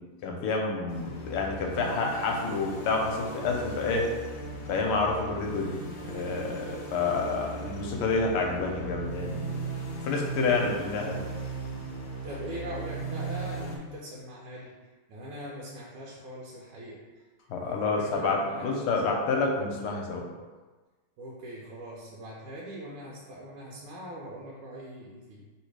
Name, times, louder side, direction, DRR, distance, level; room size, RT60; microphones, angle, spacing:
voice 1, 0.2-4.1 4.7-9.5 10.0-11.2 17.5-20.2, left 3 dB, 85° left, 1 dB, 1.6 m, -29 dB
sound 1, 0.9-13.8, right 3 dB, 65° left, 1.0 m, -38 dB
voice 2, 12.2-14.7 15.1-17.1 17.5-19.3 21.2-25.4, right 1 dB, 90° right, -4 dB, 1.6 m, -41 dB
3.4 x 3.2 x 4.6 m, 1.3 s
omnidirectional pair, 2.4 m